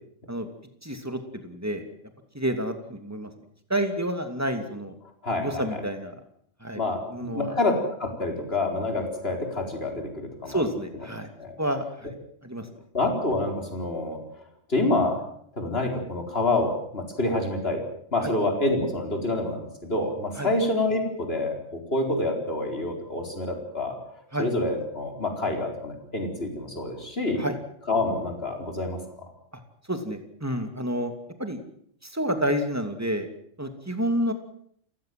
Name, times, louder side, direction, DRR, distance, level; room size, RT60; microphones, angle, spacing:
voice 1, 0.8-1.8 2.3-3.3 3.7-4.9 5.4-6.2 6.6-6.8 7.1-7.5 10.4-11.3 11.6-12.1 12.4-12.7 18.2-18.3 20.4-20.5 24.3-24.5 27.4-27.6 29.9-31.1 31.4-31.6 32.0-33.3 33.6-34.3, equal, 10° right, 7 dB, 2.8 m, -29 dB
voice 2, 5.2-5.6 6.7-10.6 11.4-11.6 12.9-14.2 14.7-15.2 15.6-17.8 18.1-23.9 24.4-27.4 27.9-29.0, left 2 dB, 50° left, 3 dB, 4.6 m, -27 dB
29.5 x 15.5 x 7.8 m, 0.65 s
omnidirectional pair, 1.3 m